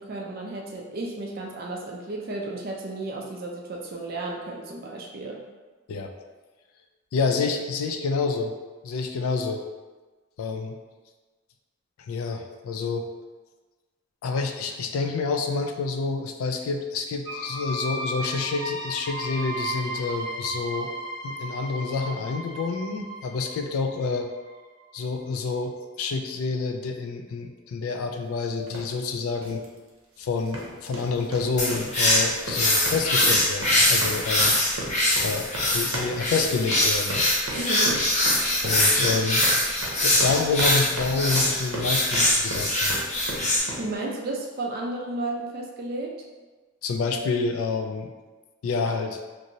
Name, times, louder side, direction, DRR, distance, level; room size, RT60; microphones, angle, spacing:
voice 1, 0.0-5.4 37.6-38.0 43.8-46.2, right 2 dB, 45° right, -1 dB, 0.4 m, -33 dB
voice 2, 7.1-8.5 8.8-9.6 10.4-10.8 12.0-13.1 14.2-20.9 21.2-24.3 24.9-29.6 30.2-34.5 35.2-37.2 38.6-39.5 40.0-42.9 46.8-48.1 48.6-49.2, left 4 dB, 90° left, 4 dB, 0.3 m, -28 dB
sound 1, 17.2-24.8, right 1 dB, 5° right, 0.7 m, -35 dB
sound 2, 28.7-28.9 29.4-29.6 30.4-43.9, right 1 dB, 80° right, 0.7 m, -35 dB
sound 3, 31.6-43.6, left 1 dB, 35° left, 0.5 m, -23 dB
2.8 x 2.6 x 2.6 m, 1.3 s
head